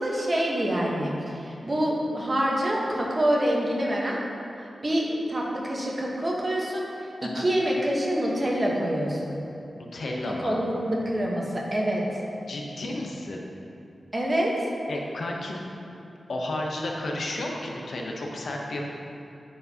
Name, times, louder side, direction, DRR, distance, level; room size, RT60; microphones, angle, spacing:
voice 1, 0.0-4.2 4.8-6.9 7.2-9.4 10.4-12.2 14.1-14.7, equal, 30° right, -3 dB, 1.1 m, -26 dB
voice 2, 9.8-10.6 12.5-13.4 14.9-15.6 16.3-18.9, left 1 dB, 70° left, -1 dB, 0.8 m, -32 dB
10.5 x 4.5 x 2.8 m, 2.7 s
wide cardioid pair, 100°, 0 cm